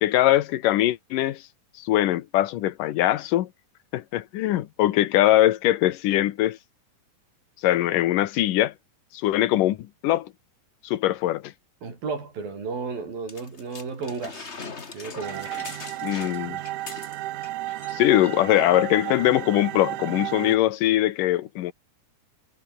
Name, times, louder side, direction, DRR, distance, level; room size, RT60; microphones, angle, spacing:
voice 1, 0.0-1.4 1.8-3.5 3.9-6.6 7.6-8.7 9.1-10.3 10.8-11.5 16.0-16.6 17.9-21.7, left 14 dB, 75° left, 2.6 m, -22 dB
voice 2, 11.8-14.5 14.9-15.7 16.2-16.3, right 4 dB, 85° right, 8.3 m, -33 dB
sound 1, 13.3-17.5 17.8-17.9 18.2-18.7 19.4-19.5, left 4 dB, 25° left, 1.5 m, -41 dB
sound 2, 15.2-20.6, right 15 dB, 70° right, 2.3 m, -33 dB
omnidirectional pair, 4.0 m